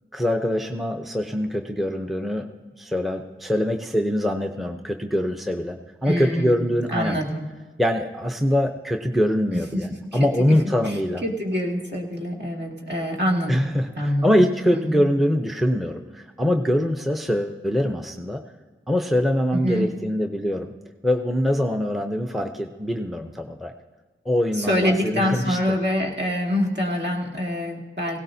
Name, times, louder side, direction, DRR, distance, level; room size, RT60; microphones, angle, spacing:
voice 1, 0.1-2.5 2.8-7.2 7.8-11.2 13.5-18.4 18.9-20.7 21.0-23.7 24.2-25.6, equal, ahead, 5 dB, 0.7 m, -23 dB
voice 2, 6.0-7.5 9.5-10.5 10.8-13.7 14.0-14.4 14.7-15.0 19.5-19.9 24.5-28.2, equal, 55° right, -2 dB, 2.4 m, -26 dB
17.5 x 17.0 x 2.8 m, 1.3 s
wide cardioid pair, 45°, 21 cm